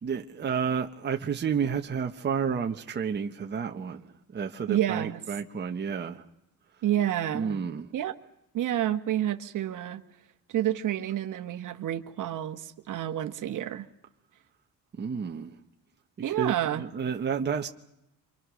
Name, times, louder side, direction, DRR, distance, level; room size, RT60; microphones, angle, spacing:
voice 1, 0.0-4.1 4.3-6.2 7.3-7.9 15.0-15.5 16.3-17.7, right 6 dB, 30° right, 1.2 m, -30 dB
voice 2, 4.7-5.2 6.8-7.6 7.9-8.2 8.5-10.0 10.5-13.9 16.2-16.9, right 12 dB, 60° right, 1.6 m, -29 dB
28.0 x 24.5 x 6.4 m
cardioid pair, 150°, 35 cm